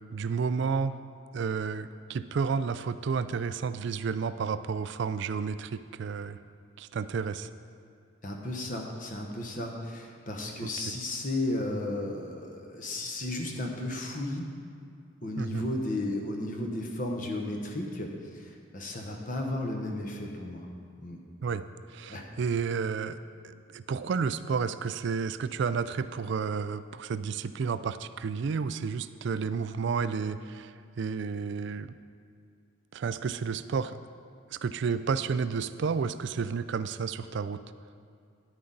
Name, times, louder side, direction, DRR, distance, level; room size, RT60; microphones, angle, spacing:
voice 1, 0.1-1.0 1.3-6.4 6.8-7.5 10.6-10.7 15.4-15.6 21.4-32.0 32.9-34.0 34.5-37.6, right 5 dB, 55° right, 13 dB, 0.3 m, -31 dB
voice 2, 8.2-14.5 15.2-20.7 21.0-21.2 22.1-22.3, left 1 dB, 40° left, 2 dB, 1.0 m, -34 dB
9.8 x 9.6 x 3.9 m, 2.4 s
head